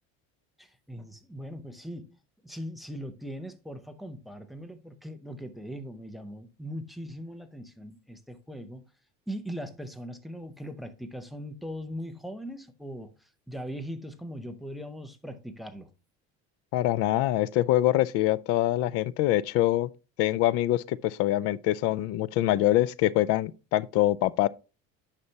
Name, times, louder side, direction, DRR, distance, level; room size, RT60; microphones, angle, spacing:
voice 1, 0.6-2.2 2.4-8.8 9.3-15.9, equal, ahead, 0.6 m, -40 dB
voice 2, 16.7-19.9 20.2-24.5, left 14 dB, 50° left, 0.4 m, -24 dB
9.7 x 5.7 x 2.8 m
cardioid pair, 160°, 31 cm